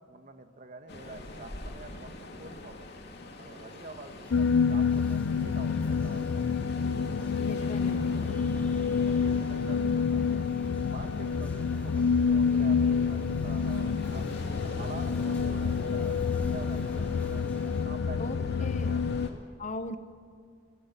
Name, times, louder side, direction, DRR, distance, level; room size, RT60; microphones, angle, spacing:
voice 1, 0.1-2.9 3.3-6.5 8.7-10.5 10.9-17.5 17.8-19.5, right 3 dB, 45° right, 6 dB, 1.7 m, -47 dB
Ocean, 0.9-19.3, left 1 dB, 60° left, 2.5 m, -43 dB
sound 1, 4.2-17.9, left 1 dB, 5° left, 2.6 m, -51 dB
sound 2, 4.3-19.3, left 6 dB, 80° left, 0.5 m, -28 dB
voice 2, 7.4-8.2 18.2-19.0 19.6-20.0, left 2 dB, 40° left, 10 dB, 1.1 m, -38 dB
24.0 x 16.5 x 8.3 m, 2.2 s
head